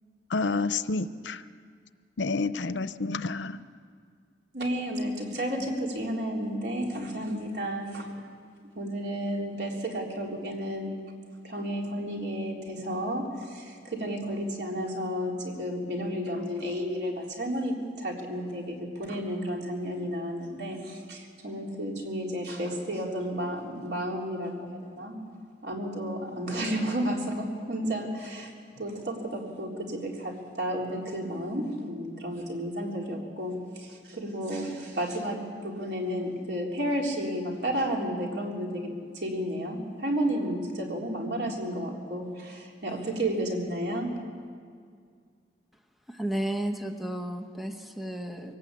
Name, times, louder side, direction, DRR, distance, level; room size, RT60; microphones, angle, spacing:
voice 1, 0.3-1.4 2.2-3.6, left 3 dB, 90° left, 14 dB, 0.7 m, -29 dB
voice 2, 4.5-8.1 8.8-10.9 11.4-25.2 25.6-35.4 35.6-44.1, equal, 70° right, -1 dB, 3.9 m, -32 dB
voice 3, 46.1-48.5, right 1 dB, ahead, 4 dB, 1.3 m, -33 dB
23.5 x 18.0 x 8.4 m, 2.1 s
head